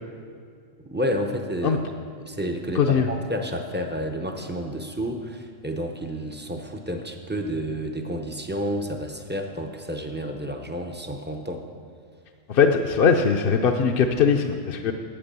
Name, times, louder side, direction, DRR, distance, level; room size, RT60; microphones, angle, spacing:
voice 1, 0.9-1.8 2.2-11.7, equal, 15° right, 3 dB, 0.4 m, -30 dB
voice 2, 2.8-3.1 12.5-14.9, left 6 dB, 60° left, 3 dB, 0.7 m, -20 dB
8.5 x 8.3 x 6.8 m, 2.1 s
omnidirectional pair, 1.3 m